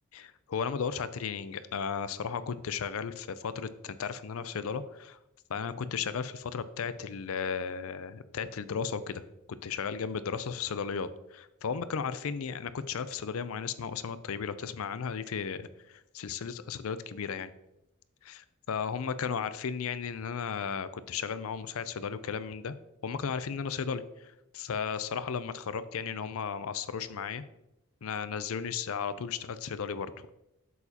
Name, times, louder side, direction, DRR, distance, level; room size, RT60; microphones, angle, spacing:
voice 1, 0.1-5.2 5.5-9.2 9.5-17.5 18.2-22.7 23.0-27.4 28.0-30.3, left 6 dB, 75° left, 14 dB, 0.4 m, -35 dB
8.2 x 6.9 x 2.8 m, 0.88 s
head